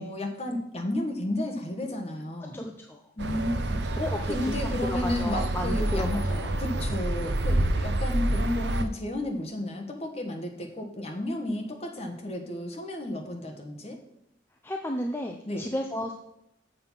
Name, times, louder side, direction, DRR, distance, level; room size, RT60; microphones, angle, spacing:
voice 1, 0.0-2.6 3.2-6.2 6.6-14.0 15.4-15.7, left 1 dB, 35° left, 3 dB, 1.4 m, -32 dB
voice 2, 2.5-3.0 4.1-4.5 4.9-6.5 14.6-16.1, left 1 dB, 15° left, 2 dB, 0.6 m, -33 dB
sound 1, 3.2-8.8, right 1 dB, 65° right, 0.7 m, -28 dB
7.5 x 6.9 x 5.7 m, 0.81 s
head